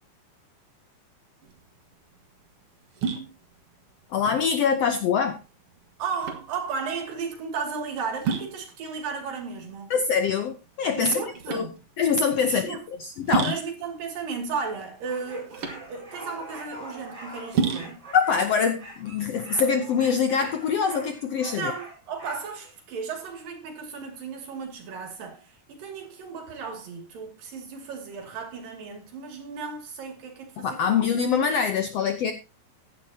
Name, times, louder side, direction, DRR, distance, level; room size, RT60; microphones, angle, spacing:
sound 1, 1.4-20.0, right 6 dB, 50° right, 2.1 m, -34 dB
voice 1, 4.1-5.4 9.9-11.2 11.5-11.7 12.0-13.5 18.1-21.7 30.6-32.3, left 6 dB, 70° left, 1.5 m, -24 dB
voice 2, 6.0-9.9 11.0-11.8 12.5-12.8 13.4-15.6 15.9-18.1 21.6-31.2, right 5 dB, 75° right, 4.2 m, -34 dB
sound 2, 14.5-22.7, right 2 dB, 25° right, 6.7 m, -43 dB
15.5 x 10.5 x 2.8 m
omnidirectional pair, 4.0 m